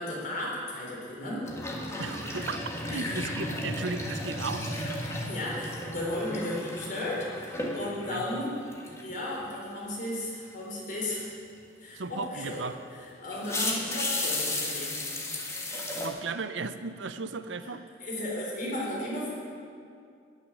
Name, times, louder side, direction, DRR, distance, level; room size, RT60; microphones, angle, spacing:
voice 1, 0.0-1.4 2.9-3.3 4.7-8.5 9.0-11.3 11.8-12.6 13.2-14.9 17.6-17.7 18.0-19.3, left 1 dB, 45° left, -4 dB, 3.9 m, -35 dB
sound 1, 1.4-8.4 8.7-9.1 12.5-12.6 13.3-16.1, left 1 dB, 15° left, 1.6 m, -34 dB
voice 2, 2.0-4.7 8.1-8.4 11.9-12.8 16.0-17.8, right 4 dB, 90° right, 11 dB, 0.7 m, -36 dB
13.5 x 6.4 x 10.0 m, 2.3 s
head